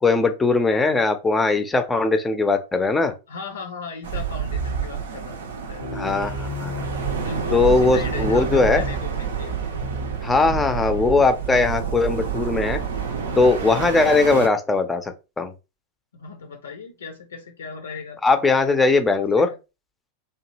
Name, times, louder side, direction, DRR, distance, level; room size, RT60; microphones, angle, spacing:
voice 1, 0.0-3.2 5.9-6.7 7.5-8.8 10.2-12.8 13.4-15.5 18.2-19.5, left 3 dB, 10° left, 0.5 m, -20 dB
voice 2, 3.3-6.0 7.2-9.5 16.1-18.2 19.1-19.6, left 5 dB, 70° left, 0.5 m, -37 dB
sound 1, 4.0-14.5, right 7 dB, 65° right, 0.5 m, -28 dB
sound 2, 4.5-5.1 5.5-5.6 5.8-11.1, equal, 90° right, 0.8 m, -33 dB
2.8 x 2.3 x 3.1 m
figure-of-eight pair, 90°, 0 cm